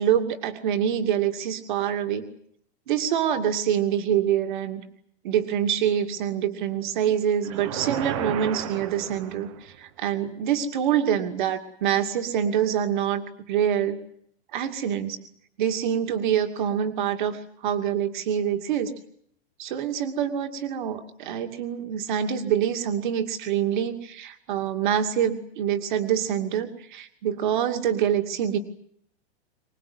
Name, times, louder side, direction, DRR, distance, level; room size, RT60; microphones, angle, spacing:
voice 1, 0.0-2.3 2.9-4.8 5.2-13.2 13.5-14.0 14.5-15.2 15.6-18.9 19.6-28.6, right 9 dB, 45° right, 6 dB, 2.5 m, -25 dB
sound 1, 7.4-9.8, right 10 dB, 30° right, 1.0 m, -33 dB
25.5 x 19.5 x 9.6 m, 0.67 s
supercardioid pair, 180°, 33 cm